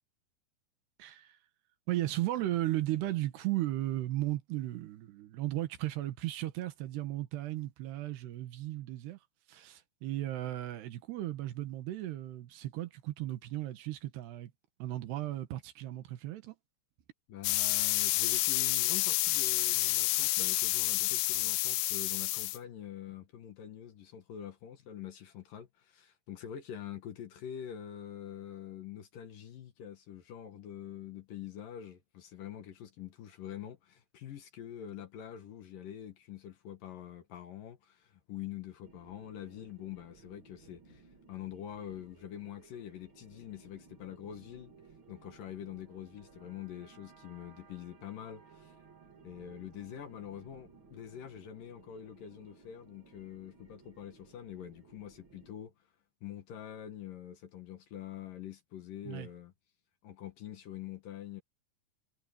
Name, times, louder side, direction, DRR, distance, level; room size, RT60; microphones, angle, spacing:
voice 1, 1.0-1.4 1.9-9.2 9.5-14.5 14.8-16.6 59.0-59.3, right 15 dB, 75° right, 3.4 m, -35 dB
voice 2, 17.3-44.7 45.1-48.8 49.2-55.7 56.2-59.5 60.0-61.4, left 10 dB, 65° left, 2.7 m, -45 dB
sound 1, 17.4-22.6, left 20 dB, 85° left, 2.3 m, -29 dB
sound 2, 38.8-55.5, right 4 dB, 35° right, 2.7 m, -59 dB
omnidirectional pair, 4.9 m